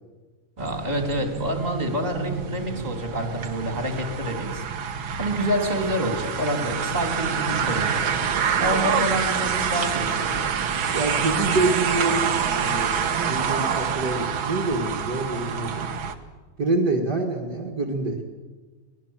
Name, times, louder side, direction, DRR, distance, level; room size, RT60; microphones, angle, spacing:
voice 1, 0.6-4.6 5.2-8.0 8.3-10.5, equal, 20° right, 4 dB, 3.5 m, -27 dB
sound 1, 0.6-16.1, right 7 dB, 75° right, 2.1 m, -27 dB
voice 2, 10.9-15.9 16.6-18.2, right 2 dB, 50° right, 2 dB, 2.4 m, -26 dB
23.0 x 20.0 x 7.4 m, 1.4 s
omnidirectional pair, 2.2 m